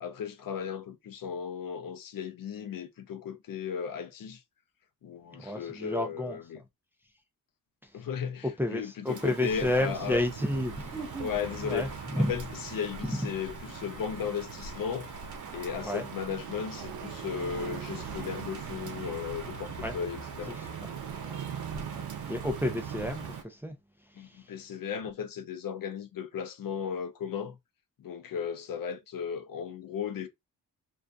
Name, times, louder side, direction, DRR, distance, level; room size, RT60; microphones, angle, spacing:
voice 1, 0.0-4.4 5.0-6.6 7.9-10.2 11.2-15.1 15.5-20.6 24.2-27.6 28.0-30.3, left 7 dB, 60° left, 0.6 m, -36 dB
voice 2, 5.4-6.4 8.6-11.3 11.6-12.3 13.0-13.2 15.8-16.0 19.8-19.9 20.5-20.7 21.2-21.4 21.7-21.9 22.3-23.8 24.2-24.4, left 1 dB, 5° right, 0.4 m, -31 dB
Rain, 9.1-23.4, right 3 dB, 50° right, 1.1 m, -46 dB
sound 1, 9.5-23.4, right 7 dB, 70° right, 0.5 m, -41 dB
2.5 x 2.4 x 2.2 m
cardioid pair, 90°, 38 cm